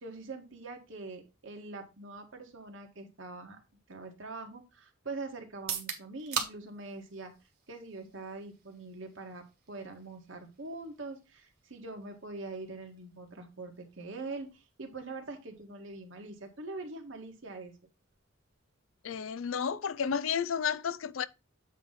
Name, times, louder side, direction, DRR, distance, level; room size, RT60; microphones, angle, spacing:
voice 1, 0.0-3.6 3.9-7.3 7.7-17.7, right 3 dB, 65° right, 1.7 m, -43 dB
sound 1, 5.5-19.4, right 6 dB, 50° right, 1.6 m, -46 dB
voice 2, 19.0-21.3, left 7 dB, 80° left, 0.4 m, -32 dB
8.4 x 3.1 x 5.5 m
head